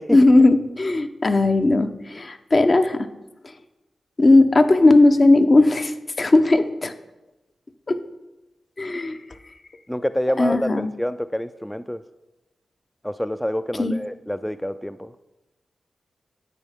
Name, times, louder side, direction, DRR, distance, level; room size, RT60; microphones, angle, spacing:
voice 1, 0.1-3.1 4.2-6.9 7.9-8.0 8.8-9.2 10.4-10.9 13.8-13.9, left 2 dB, 45° left, 8 dB, 0.7 m, -17 dB
voice 2, 9.9-12.0 13.0-15.1, equal, 5° left, 11 dB, 0.3 m, -27 dB
10.0 x 8.2 x 3.5 m, 1.0 s
cardioid pair, 60°, 0 cm